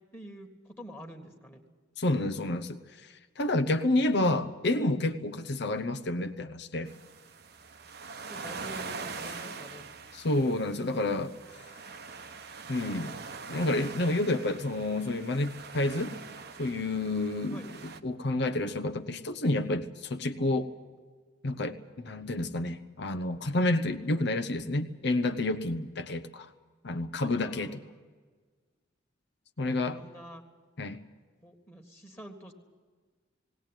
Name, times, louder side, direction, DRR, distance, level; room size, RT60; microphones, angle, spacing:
voice 1, 0.1-1.6 8.3-9.9 17.5-17.7 27.3-28.0 29.6-30.4 31.4-32.5, equal, 10° left, 3 dB, 1.7 m, -47 dB
voice 2, 2.0-6.9 10.1-11.3 12.7-13.2 13.5-16.2 16.6-17.6 18.0-20.7 21.4-26.5 26.8-27.8 29.6-30.0 30.8-31.0, left 2 dB, 60° left, 7 dB, 0.8 m, -29 dB
sound 1, 6.9-18.0, right 4 dB, 55° right, 1.1 m, -43 dB
18.5 x 18.5 x 9.0 m, 1.5 s
head